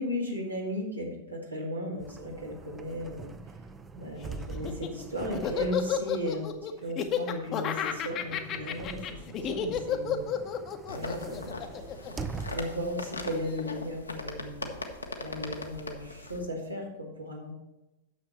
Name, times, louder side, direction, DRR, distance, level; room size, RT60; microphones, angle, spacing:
voice 1, 0.0-3.3 4.0-10.3 10.9-11.6 12.1-14.7 15.2-17.5, equal, 85° right, -1 dB, 2.0 m, -36 dB
sound 1, 2.0-12.9 13.4-13.5 15.0-15.9, right 4 dB, 20° right, 0.5 m, -44 dB
Laughter, 4.5-12.9, left 8 dB, 35° left, 0.8 m, -32 dB
sound 2, 10.9-16.4, left 2 dB, 80° left, 1.0 m, -40 dB
9.5 x 6.8 x 4.3 m, 0.96 s
figure-of-eight pair, 90°, 0 cm